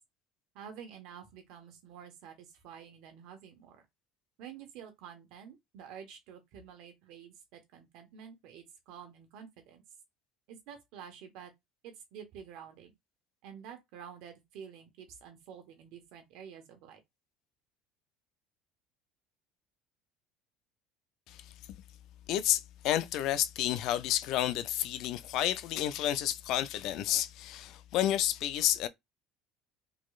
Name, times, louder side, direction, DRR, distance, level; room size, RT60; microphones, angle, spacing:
voice 1, 0.5-3.8 4.4-9.8 10.5-11.5 11.8-12.9 13.4-17.0, right 8 dB, 70° right, 1.2 m, -49 dB
voice 2, 22.3-28.9, left 12 dB, 65° left, 0.5 m, -30 dB
3.9 x 3.1 x 2.4 m
supercardioid pair, 95°, 0 cm